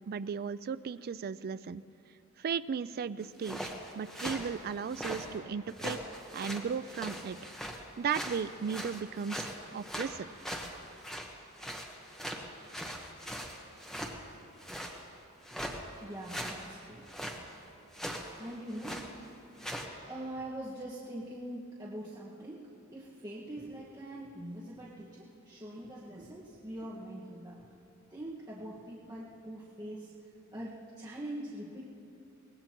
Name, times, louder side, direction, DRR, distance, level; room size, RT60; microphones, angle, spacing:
voice 1, 0.1-1.8 2.4-6.0 6.3-7.4 8.0-10.3, right 6 dB, 45° right, 14 dB, 0.3 m, -36 dB
sound 1, 3.2-5.3 5.7-7.8 8.1-11.3 11.6-14.2 14.6-15.0 15.4-15.8 16.2-16.7 17.1-17.4 17.9-18.3 18.7-19.1 19.6-19.8, equal, ahead, 1.2 m, -40 dB
voice 2, 16.0-17.1 18.4-19.3 20.1-27.6 28.1-30.1 30.5-31.9, right 1 dB, 20° right, -8 dB, 1.6 m, -43 dB
24.0 x 19.5 x 3.0 m, 2.7 s
head